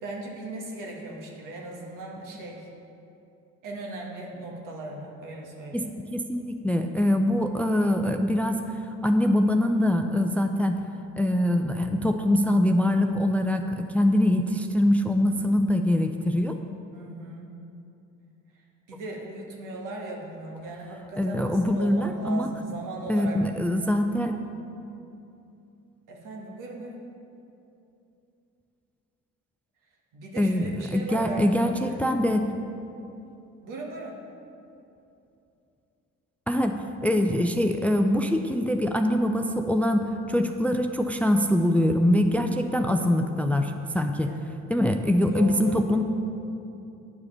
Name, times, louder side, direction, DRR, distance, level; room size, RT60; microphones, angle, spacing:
voice 1, 0.0-2.7 3.6-5.9 16.9-17.6 18.9-23.4 26.1-27.0 30.1-31.5 31.8-32.0 33.6-34.2 44.2-44.6 45.3-45.8, right 2 dB, 70° right, -1 dB, 1.6 m, -38 dB
voice 2, 6.1-8.6 9.0-10.8 11.2-16.6 21.2-22.5 23.1-24.4 30.4-32.5 36.5-36.8 37.0-44.3 44.7-46.0, left 1 dB, 5° left, 6 dB, 0.5 m, -23 dB
9.6 x 4.8 x 5.7 m, 2.8 s
hypercardioid pair, 55°, 33 cm